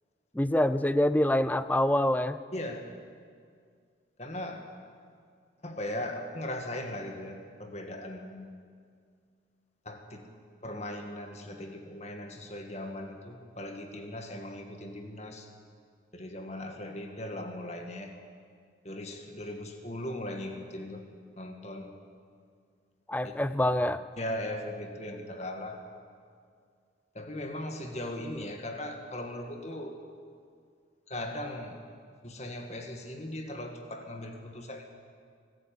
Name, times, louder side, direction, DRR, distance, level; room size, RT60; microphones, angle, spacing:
voice 1, 0.3-2.4 23.1-24.0, left 1 dB, 10° left, 13 dB, 0.5 m, -25 dB
voice 2, 2.5-2.9 4.2-4.7 5.6-8.5 9.9-10.3 10.6-15.5 16.1-18.1 18.8-21.1 21.4-22.0 23.2-23.3 24.2-25.8 27.1-29.9 31.1-31.8 32.2-34.9, left 1 dB, 35° left, 4 dB, 2.1 m, -38 dB
23.5 x 14.0 x 9.2 m, 2.1 s
head